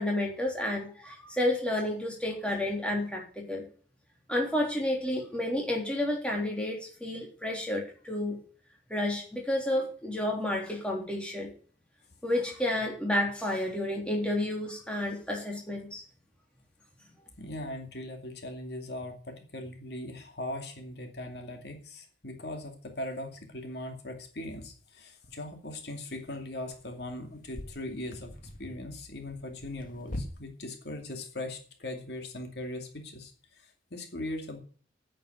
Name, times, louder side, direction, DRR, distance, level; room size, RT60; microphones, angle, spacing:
voice 1, 0.0-3.7 4.3-8.4 8.9-11.5 12.2-16.0, left 1 dB, 5° left, -1 dB, 3.5 m, -30 dB
voice 2, 17.4-28.3 28.6-34.6, left 1 dB, 60° left, 4 dB, 2.5 m, -40 dB
sound 1, 24.3-24.4 25.2-25.4 26.1-30.3, left 1 dB, 45° left, 1.8 m, -44 dB
9.3 x 8.5 x 9.2 m, 0.43 s
head